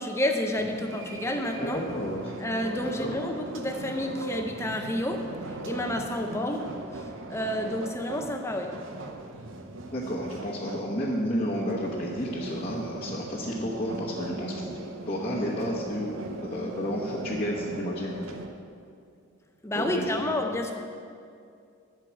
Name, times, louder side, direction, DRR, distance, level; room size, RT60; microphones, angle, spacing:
voice 1, 0.0-1.8 2.4-5.3 5.6-6.8 7.3-8.8 19.6-20.7, left 1 dB, 15° left, 4 dB, 0.5 m, -30 dB
sound 1, 0.6-18.5, right 2 dB, 65° right, 0.7 m, -39 dB
voice 2, 1.6-2.3 3.0-3.2 9.9-14.7 15.1-16.1 16.4-18.1 19.7-20.2, equal, 30° left, -7 dB, 1.0 m, -31 dB
11.5 x 4.7 x 7.3 m, 2.3 s
head